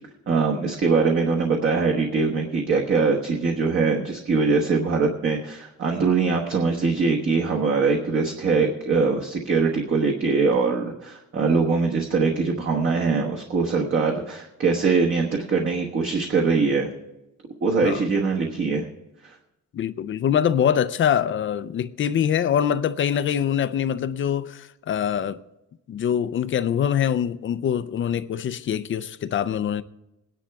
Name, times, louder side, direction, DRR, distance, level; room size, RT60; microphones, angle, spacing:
voice 1, 0.3-16.9 17.6-18.8 19.2-19.4, right 4 dB, 40° right, 1.2 m, -22 dB
voice 2, 19.7-25.4 25.9-29.8, left 9 dB, 40° left, 0.5 m, -24 dB
20.5 x 10.0 x 3.5 m
cardioid pair, 165°, 31 cm